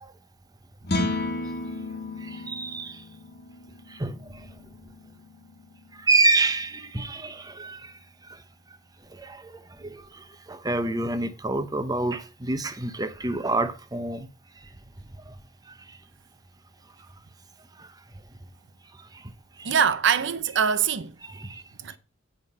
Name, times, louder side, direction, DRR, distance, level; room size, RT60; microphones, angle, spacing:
sound 1, 0.8-7.2, left 2 dB, 55° left, 1.4 m, -34 dB
voice 1, 2.2-3.0 3.9-4.5 6.0-7.9 8.3-8.4 9.1-14.3 15.3-15.4 15.7-15.8 17.8-17.9 19.1-19.2 19.6-19.7 21.3-21.6, right 2 dB, 20° right, 0.8 m, -28 dB
voice 2, 19.6-21.1 21.8-22.0, right 7 dB, 65° right, 0.7 m, -23 dB
9.2 x 5.1 x 5.4 m
head